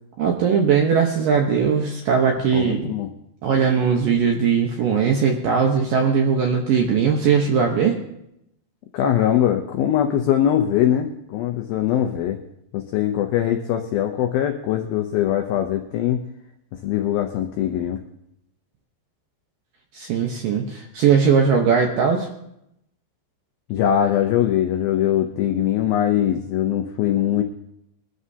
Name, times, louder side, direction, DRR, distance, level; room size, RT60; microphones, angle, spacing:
voice 1, 0.2-2.9 3.4-8.0 19.9-22.3, right 6 dB, 75° right, 1 dB, 2.1 m, -19 dB
voice 2, 2.5-3.1 8.9-12.4 12.7-16.2 16.8-18.0 23.7-27.4, left 10 dB, 90° left, 5 dB, 2.1 m, -21 dB
22.5 x 13.0 x 2.8 m, 0.79 s
omnidirectional pair, 5.3 m